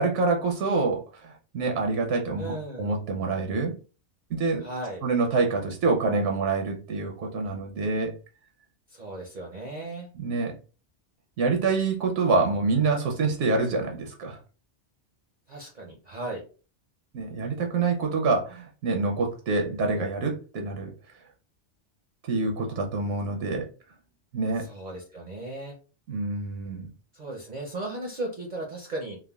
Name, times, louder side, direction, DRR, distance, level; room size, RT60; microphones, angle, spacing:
voice 1, 0.0-3.7 4.3-4.7 5.0-8.1 10.1-10.5 11.4-14.4 17.1-20.9 22.3-23.7 24.3-24.7 26.1-26.9, right 3 dB, 80° right, 1 dB, 0.9 m, -26 dB
voice 2, 2.4-2.9 4.6-5.0 8.9-10.1 15.5-16.4 24.7-25.8 27.1-29.2, right 2 dB, 50° right, 0 dB, 0.6 m, -36 dB
3.4 x 2.0 x 2.2 m, 0.36 s
omnidirectional pair, 1.2 m